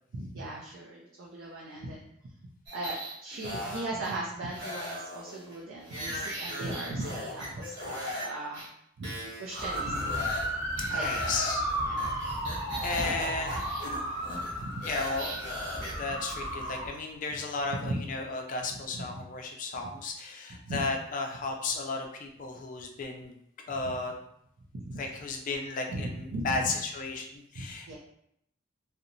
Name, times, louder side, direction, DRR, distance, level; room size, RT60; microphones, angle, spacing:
voice 1, 0.1-2.1 2.7-7.9 8.2-8.7 9.0-9.1 9.4-10.5 10.8-11.4 11.8-12.1 13.0-13.1 13.5-13.6 14.6-14.8 17.8-18.0 18.7-19.2 20.7-20.8 23.8-23.9 24.7-25.1 25.9-26.7 27.6-28.0, right 2 dB, 85° right, -2 dB, 0.4 m, -38 dB
sound 1, 2.7-4.1 4.5-8.3 8.5-8.7 9.0-10.5 10.8-15.9, equal, 60° right, 0.9 m, -38 dB
sound 2, 9.6-16.9, equal, 15° right, 0.5 m, -34 dB
voice 2, 10.9-11.6 12.8-13.7 14.8-15.4 16.0-23.3 23.7-24.1 25.0-28.0, left 3 dB, 40° left, 2 dB, 0.4 m, -34 dB
2.7 x 2.1 x 2.5 m, 0.75 s
head